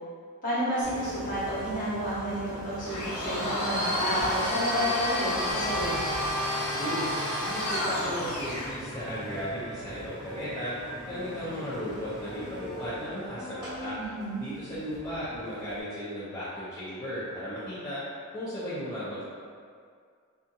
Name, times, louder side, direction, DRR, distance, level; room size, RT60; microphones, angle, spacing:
voice 1, 0.4-6.0 14.0-14.4, equal, 40° left, -10 dB, 0.8 m, -30 dB
Engine, 0.8-15.8, equal, 5° right, 1.3 m, -42 dB
Domestic sounds home sounds, 2.9-8.7, equal, 85° left, 0.7 m, -30 dB
Bass guitar, 5.5-11.7, left 6 dB, 40° right, 0.5 m, -50 dB
voice 2, 6.8-7.1 7.4-10.7 11.1-14.0 14.4-18.0 18.3-19.2, equal, 15° left, -13 dB, 0.4 m, -36 dB
2.6 x 2.6 x 2.3 m, 2.1 s
head